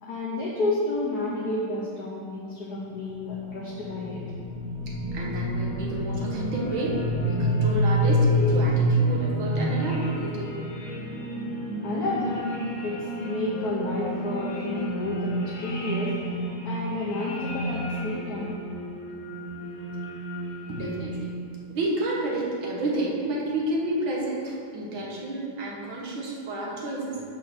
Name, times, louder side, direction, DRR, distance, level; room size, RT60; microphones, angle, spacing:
voice 1, 0.0-4.2 11.8-12.4 12.8-16.2 16.6-18.6, left 2 dB, 55° left, -6 dB, 1.5 m, -30 dB
sound 1, 3.1-21.5, equal, 90° left, 2.1 m, -28 dB
voice 2, 5.1-10.6 20.7-21.3 21.7-27.2, right 1 dB, 75° right, -3 dB, 2.1 m, -30 dB
6.6 x 6.4 x 6.0 m, 2.3 s
omnidirectional pair, 2.2 m